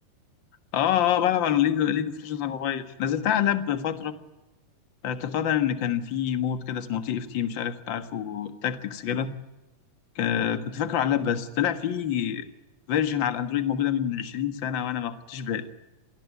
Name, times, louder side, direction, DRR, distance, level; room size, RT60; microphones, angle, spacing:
voice 1, 0.7-4.1 5.0-9.3 10.1-12.4 12.9-15.6, left 10 dB, 55° left, 8 dB, 1.3 m, -26 dB
27.0 x 20.0 x 9.6 m, 1.1 s
omnidirectional pair, 4.5 m